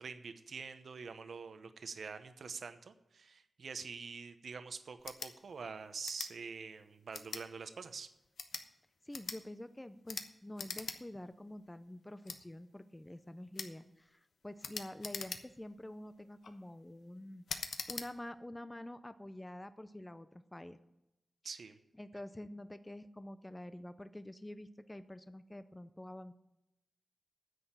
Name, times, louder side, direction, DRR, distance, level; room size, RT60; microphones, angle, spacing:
voice 1, 0.0-8.1 21.4-21.8, right 5 dB, 65° right, 9 dB, 0.9 m, -45 dB
sound 1, 5.0-5.3 6.0-6.3 7.1-7.4 8.2-8.7 9.1-9.4 10.1-10.3 10.6-11.0 11.3-11.4 12.2-12.4 13.5-13.7 14.6-15.7 16.2-16.5 17.5-18.1, left 5 dB, 85° left, 1.0 m, -42 dB
voice 2, 9.1-20.8 22.0-26.3, left 1 dB, 10° left, 11 dB, 0.5 m, -48 dB
9.9 x 7.9 x 8.8 m, 0.88 s
wide cardioid pair, 150°, 0 cm